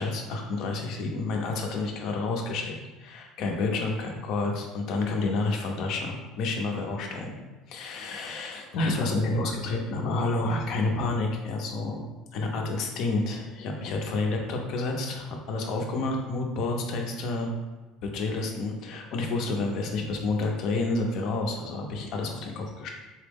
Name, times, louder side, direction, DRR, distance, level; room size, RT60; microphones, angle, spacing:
voice 1, 0.0-7.3 7.7-12.0 12.3-17.5 18.0-22.9, left 3 dB, 55° left, 2 dB, 0.6 m, -29 dB
4.0 x 2.0 x 3.5 m, 1.2 s
cardioid pair, 155°, 0 cm